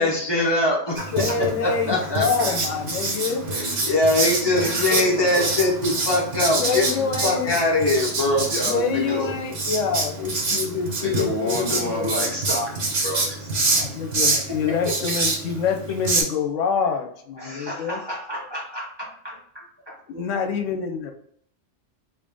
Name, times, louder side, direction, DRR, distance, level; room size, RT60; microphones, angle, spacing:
voice 1, 0.0-2.5 3.8-8.5, left 2 dB, 25° left, -1 dB, 0.7 m, -22 dB
Writing, 1.0-16.2, right 3 dB, 70° right, 1.6 m, -27 dB
voice 2, 1.1-3.4 6.6-7.6 8.4-12.1 14.0-18.0 20.1-21.1, left 6 dB, 80° left, 4 dB, 1.0 m, -26 dB
voice 3, 4.4-5.5 8.5-9.3 11.0-12.7 13.0-13.5 13.8-13.9 14.8-14.9 17.4-20.0, left 1 dB, 20° right, -5 dB, 1.0 m, -30 dB
3.0 x 2.7 x 3.5 m, 0.66 s
omnidirectional pair, 1.3 m